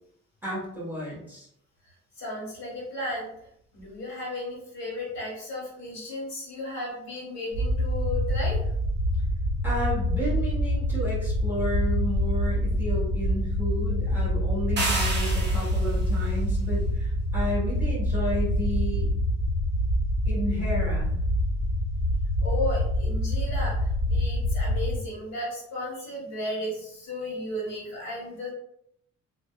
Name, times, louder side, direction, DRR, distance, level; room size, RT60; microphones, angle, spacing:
voice 1, 0.4-1.5 9.6-19.1 20.2-21.1, equal, 5° right, -8 dB, 1.4 m, -32 dB
voice 2, 2.2-3.3 3.7-8.7 22.4-28.5, left 1 dB, 60° left, -5 dB, 1.5 m, -34 dB
sound 1, 7.5-25.0, equal, 85° left, 0.8 m, -26 dB
sound 2, 14.8-16.0, right 2 dB, 35° right, 0.8 m, -30 dB
2.6 x 2.4 x 2.3 m, 0.72 s
cardioid pair, 90°, 30 cm